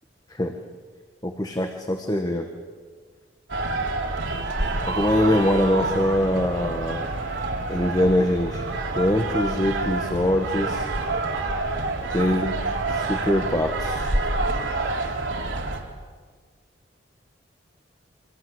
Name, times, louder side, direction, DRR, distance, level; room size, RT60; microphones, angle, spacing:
voice 1, 1.2-2.5 4.8-7.1 7.7-8.7 9.0-10.9 12.1-12.5 12.9-14.1, left 1 dB, 20° left, 4 dB, 1.7 m, -23 dB
sound 1, 3.5-15.8, right 2 dB, 90° right, 3.9 m, -27 dB
28.0 x 25.0 x 8.2 m, 1.5 s
head